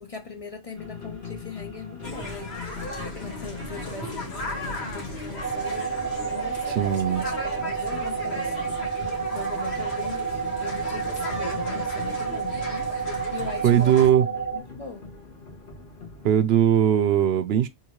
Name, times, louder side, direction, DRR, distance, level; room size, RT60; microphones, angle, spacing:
voice 1, 0.0-8.7 9.3-12.6 13.3-14.1 14.5-15.2, left 4 dB, 40° left, 0.6 m, -40 dB
sound 1, 0.7-16.4, left 5 dB, 55° left, 1.6 m, -41 dB
sound 2, 2.0-14.1, left 1 dB, 85° left, 2.1 m, -36 dB
sound 3, 5.4-14.6, right 6 dB, 15° right, 0.8 m, -30 dB
voice 2, 6.8-7.2 13.6-14.3 16.2-17.7, right 10 dB, 80° right, 0.9 m, -19 dB
3.8 x 2.9 x 3.1 m
omnidirectional pair, 1.0 m